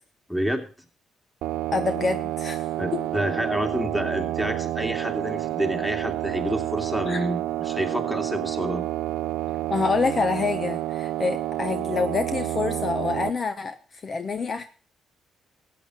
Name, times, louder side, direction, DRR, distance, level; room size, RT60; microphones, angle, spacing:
voice 1, 0.3-0.7 2.8-8.8, equal, 5° left, 5 dB, 2.5 m, -28 dB
sound 1, 1.4-13.3, right 14 dB, 85° right, 0.6 m, -29 dB
voice 2, 1.7-2.7 2.9-3.0 7.1-7.3 9.7-14.6, left 4 dB, 40° left, 9 dB, 1.0 m, -27 dB
14.0 x 8.7 x 6.1 m, 0.37 s
cardioid pair, 90°, 0 cm